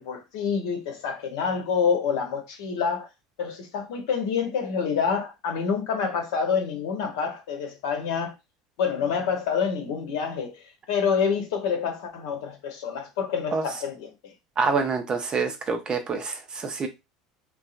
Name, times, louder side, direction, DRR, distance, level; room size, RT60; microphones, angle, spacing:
voice 1, 0.0-3.1 3.4-8.3 8.8-14.3, left 6 dB, 75° left, 0.8 m, -27 dB
voice 2, 14.6-16.9, right 4 dB, 35° right, 0.7 m, -26 dB
2.7 x 2.3 x 2.4 m
hypercardioid pair, 80°, 3 cm